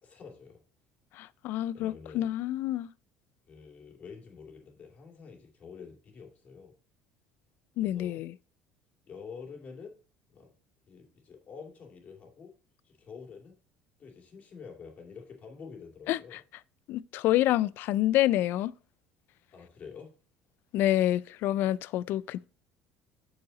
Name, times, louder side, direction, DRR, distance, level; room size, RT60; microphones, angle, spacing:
voice 1, 0.0-0.6 1.7-2.4 3.5-6.7 7.8-8.2 9.1-10.0 10.3-10.5 10.9-12.5 12.8-13.6 14.0-16.4 19.5-20.1, left 5 dB, 40° left, 2.5 m, -47 dB
voice 2, 1.2-2.9 7.8-8.3 16.1-16.4 16.9-18.7 20.7-22.5, left 14 dB, 65° left, 0.3 m, -28 dB
6.5 x 5.7 x 3.9 m
supercardioid pair, 110°, 4 cm